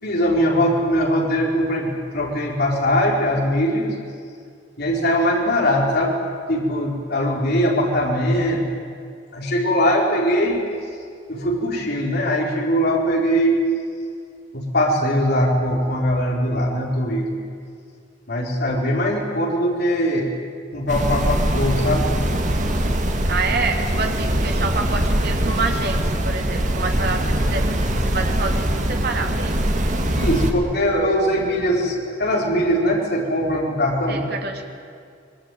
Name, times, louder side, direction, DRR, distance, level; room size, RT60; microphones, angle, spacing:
voice 1, 0.0-3.9 4.8-6.2 6.5-8.6 9.3-10.6 11.3-13.6 14.5-17.3 18.3-20.3 20.7-22.1 30.1-34.2, equal, 55° left, -2 dB, 4.3 m, -21 dB
sound 1, 20.9-30.5, right 1 dB, 40° right, 2.3 m, -22 dB
voice 2, 23.2-29.7 34.1-34.7, right 3 dB, 60° right, 3 dB, 2.7 m, -27 dB
24.0 x 22.0 x 9.2 m, 2.3 s
head